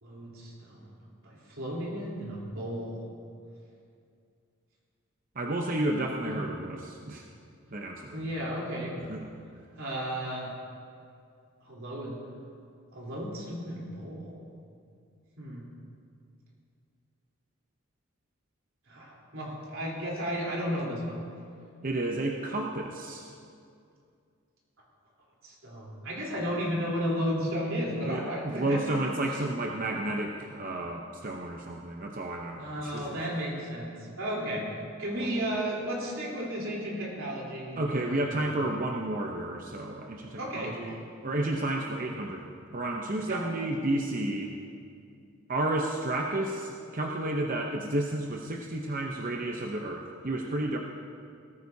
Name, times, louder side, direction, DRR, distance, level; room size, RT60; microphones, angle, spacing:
voice 1, 0.0-0.9 1.2-3.0 6.2-6.4 8.1-9.0 9.8-10.5 11.7-12.2 12.9-14.3 15.4-15.6 18.9-21.2 25.4-29.0 32.6-34.7 35.0-38.4 40.4-40.8 43.3-43.4, equal, 85° right, -4 dB, 3.7 m, -34 dB
voice 2, 5.4-7.2 7.7-8.2 9.1-9.2 21.8-23.3 28.1-33.2 35.2-35.3 37.8-42.5 42.7-44.5 45.5-50.8, right 1 dB, 40° right, 1 dB, 0.8 m, -31 dB
18.5 x 14.0 x 2.8 m, 2.4 s
head